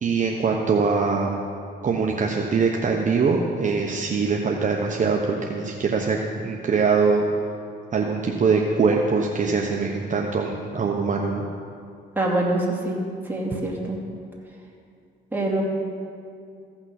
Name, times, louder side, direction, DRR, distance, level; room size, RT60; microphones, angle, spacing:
voice 1, 0.0-1.4 1.8-6.2 6.4-7.2 7.9-11.4, right 4 dB, 40° right, 0 dB, 1.0 m, -22 dB
voice 2, 12.2-13.0 13.2-14.0 15.3-15.6, right 2 dB, 10° right, -4 dB, 2.6 m, -24 dB
15.5 x 6.0 x 5.9 m, 2.3 s
cardioid pair, 90°, 20 cm